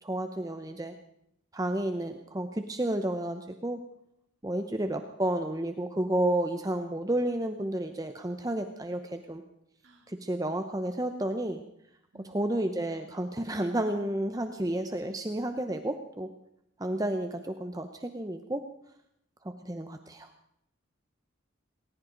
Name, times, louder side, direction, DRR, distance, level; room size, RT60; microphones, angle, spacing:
voice 1, 0.0-1.0 1.5-3.8 4.4-9.4 10.1-11.6 12.2-16.3 16.8-18.6 19.4-20.3, right 1 dB, 20° right, 7 dB, 0.7 m, -31 dB
voice 2, 12.1-13.1, right 2 dB, 70° right, 1 dB, 3.6 m, -57 dB
19.5 x 19.0 x 3.9 m, 0.76 s
head